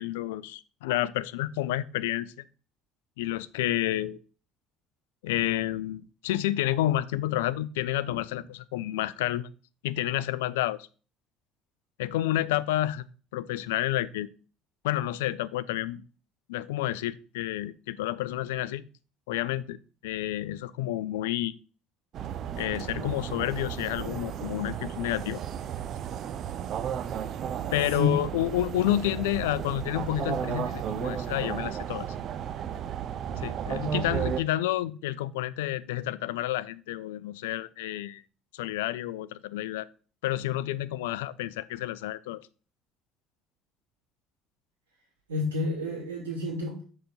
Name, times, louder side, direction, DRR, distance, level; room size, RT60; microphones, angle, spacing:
voice 1, 0.0-2.3 3.2-4.2 5.2-9.5 9.8-10.9 12.0-13.1 13.3-14.3 14.8-16.0 16.5-18.9 19.3-19.8 20.0-21.5 22.6-25.4 27.7-32.1 33.4-38.2 38.5-39.9 40.2-42.4, left 14 dB, 70° left, 0.3 m, -30 dB
sound 1, 22.1-34.4, right 9 dB, 50° right, 0.5 m, -34 dB
voice 2, 45.3-46.8, left 3 dB, 80° right, 2.2 m, -29 dB
6.6 x 4.0 x 5.4 m
figure-of-eight pair, 55°, 0 cm